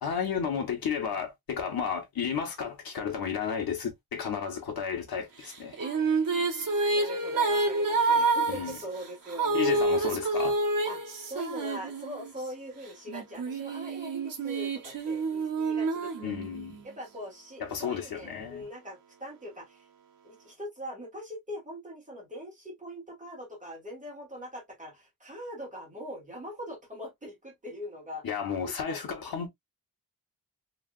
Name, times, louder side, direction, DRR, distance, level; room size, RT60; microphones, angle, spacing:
voice 1, 0.0-5.8 8.5-8.8 9.5-10.6 16.2-16.8 17.6-18.7 28.2-29.5, left 7 dB, 90° left, 1.0 m, -32 dB
sound 1, 5.5-12.5 13.1-16.8, right 3 dB, 65° right, 1.1 m, -28 dB
voice 2, 5.8-6.2 6.9-9.8 10.8-16.4 16.8-19.9 20.2-28.2 28.6-29.0, equal, 20° right, 1.5 m, -42 dB
3.2 x 2.8 x 2.3 m
wide cardioid pair, 175°, 35 cm